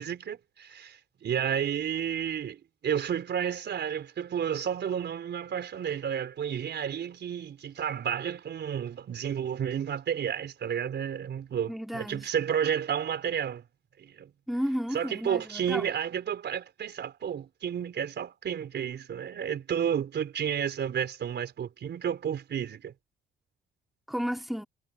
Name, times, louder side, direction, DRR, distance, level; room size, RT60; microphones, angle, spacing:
voice 1, 0.0-13.6 14.0-14.3 14.9-22.9, right 8 dB, 60° right, 4.6 m, -31 dB
voice 2, 11.7-12.3 14.5-15.9 24.1-24.6, equal, ahead, 3.0 m, -32 dB
cardioid pair, 90°, 20 cm